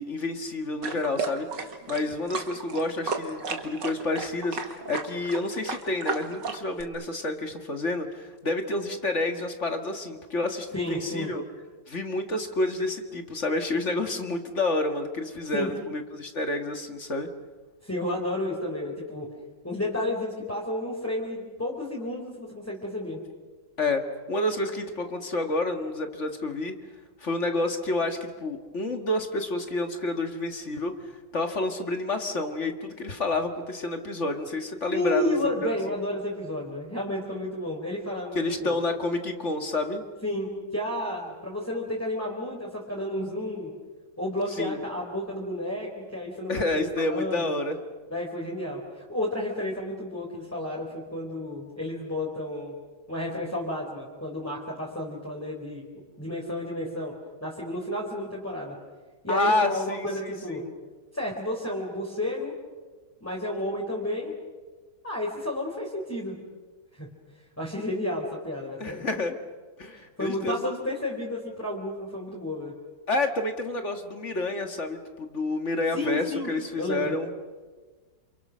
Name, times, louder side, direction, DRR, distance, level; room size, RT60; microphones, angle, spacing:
voice 1, 0.0-11.4 11.9-17.3 23.8-24.0 24.3-26.7 27.2-30.9 31.3-35.4 35.6-35.8 38.3-40.0 44.6-44.8 46.5-47.8 59.3-60.7 68.8-69.4 69.8-70.6 73.1-77.3, left 2 dB, 40° left, 5 dB, 2.2 m, -29 dB
sound 1, 0.8-6.8, right 4 dB, 85° right, 2.7 m, -33 dB
voice 2, 10.7-11.3 15.5-15.7 17.8-19.3 19.6-23.2 34.9-38.8 40.2-43.7 44.2-47.5 48.1-52.7 53.1-55.9 56.2-57.1 57.4-58.8 59.2-60.7 61.1-62.5 63.2-64.3 65.0-66.4 66.9-67.1 67.6-69.1 69.9-72.7 75.9-76.5 76.8-77.1, left 1 dB, 10° left, -3 dB, 3.9 m, -31 dB
28.5 x 28.0 x 6.3 m, 1.4 s
omnidirectional pair, 1.9 m